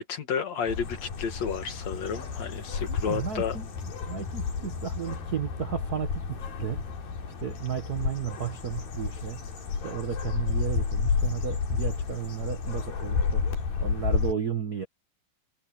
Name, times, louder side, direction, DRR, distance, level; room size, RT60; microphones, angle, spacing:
voice 1, 0.0-3.6, left 6 dB, 55° left, 2.8 m, -32 dB
sound 1, 0.7-14.3, left 5 dB, 85° left, 5.4 m, -31 dB
voice 2, 2.9-3.7 4.1-6.9 7.4-9.5 9.8-13.4 13.8-14.8, right 8 dB, 70° right, 0.9 m, -33 dB
omnidirectional pair, 4.0 m